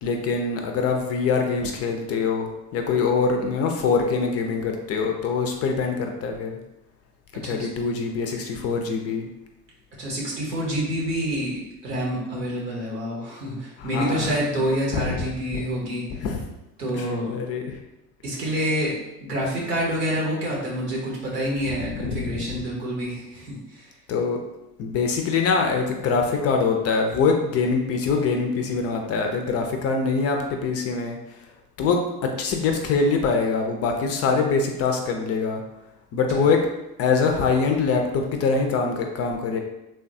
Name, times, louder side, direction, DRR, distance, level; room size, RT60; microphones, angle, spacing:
voice 1, 0.0-6.6 7.3-9.3 13.8-14.4 15.0-15.3 15.5-15.6 16.2-16.5 16.9-17.8 21.7-22.4 24.1-24.4 24.8-31.2 31.8-35.6 36.1-36.7 37.0-38.0 38.3-39.6, left 4 dB, 35° left, 3 dB, 0.4 m, -24 dB
voice 2, 10.0-16.0 16.8-17.4 18.2-23.9, equal, 90° right, -4 dB, 1.0 m, -27 dB
3.3 x 2.2 x 2.6 m, 0.93 s
hypercardioid pair, 65°, 46 cm